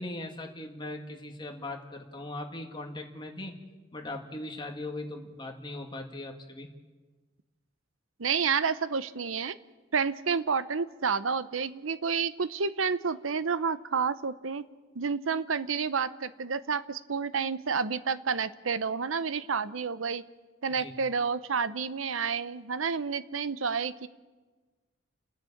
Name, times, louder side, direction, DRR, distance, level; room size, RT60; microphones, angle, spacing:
voice 1, 0.0-3.6 3.9-6.7 20.7-20.9, left 2 dB, 25° left, 3 dB, 1.9 m, -39 dB
voice 2, 8.2-9.6 9.9-14.6 14.9-20.2 20.6-24.1, right 5 dB, 85° right, 15 dB, 0.8 m, -30 dB
29.5 x 10.0 x 8.6 m, 1.3 s
head